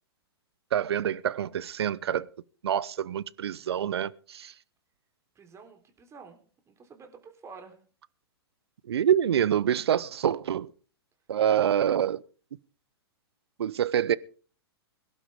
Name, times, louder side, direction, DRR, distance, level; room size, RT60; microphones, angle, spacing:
voice 1, 0.7-2.3 2.6-4.5 8.9-10.7 11.3-12.2 13.6-14.2, right 9 dB, 75° right, 0.7 m, -26 dB
voice 2, 5.4-7.8 11.6-11.7, right 5 dB, 20° right, 3.6 m, -48 dB
22.5 x 12.0 x 3.6 m
hypercardioid pair, 115°, 14 cm